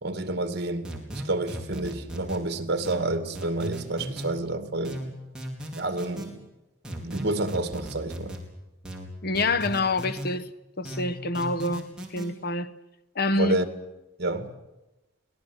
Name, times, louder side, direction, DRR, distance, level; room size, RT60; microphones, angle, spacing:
voice 1, 0.0-5.0 5.7-6.3 7.0-8.4 13.3-13.7 14.2-14.5, right 2 dB, 55° right, 2.2 m, -29 dB
sound 1, 0.8-2.4 2.8-4.3 4.8-6.3 6.8-8.4 8.8-10.3 10.8-12.3, right 1 dB, 5° right, 4.3 m, -37 dB
voice 2, 9.2-10.5 10.8-12.7 13.1-13.6, left 2 dB, 50° left, 1.0 m, -27 dB
24.0 x 19.5 x 8.0 m
head